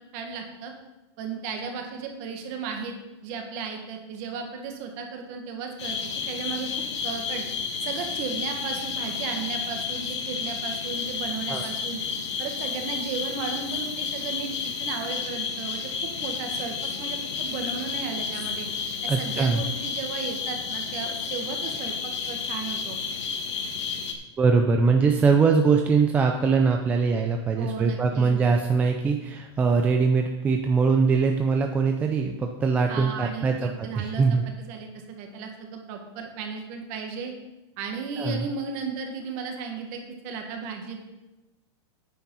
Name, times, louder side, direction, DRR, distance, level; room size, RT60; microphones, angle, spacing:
voice 1, 0.1-0.7 1.2-3.0 3.2-6.0 6.3-6.7 7.0-7.5 7.8-12.0 12.4-14.5 14.8-18.7 19.0-23.0 27.5-28.5 32.9-37.3 37.8-41.0, right 5 dB, 40° right, 3 dB, 1.8 m, -35 dB
sound 1, 5.8-24.1, left 5 dB, 80° left, 1.7 m, -31 dB
voice 2, 19.1-19.6 24.4-34.4 38.2-38.5, right 5 dB, 10° right, 3 dB, 0.4 m, -22 dB
9.2 x 7.2 x 5.5 m, 1.0 s
supercardioid pair, 165°, 15 cm